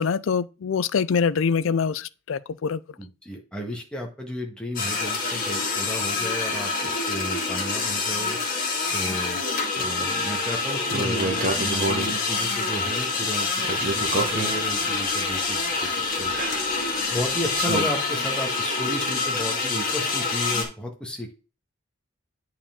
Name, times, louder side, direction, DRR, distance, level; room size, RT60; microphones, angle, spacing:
voice 1, 0.0-2.8 9.5-9.6, left 6 dB, 75° left, 0.4 m, -24 dB
voice 2, 3.0-8.4 8.9-9.4 9.7-16.3 17.1-21.3, equal, 5° left, 1.6 m, -33 dB
sound 1, 4.8-20.7, left 4 dB, 45° left, 2.1 m, -26 dB
sound 2, 10.9-12.2 13.6-17.8, right 2 dB, 45° right, 1.3 m, -29 dB
8.6 x 4.7 x 3.6 m
head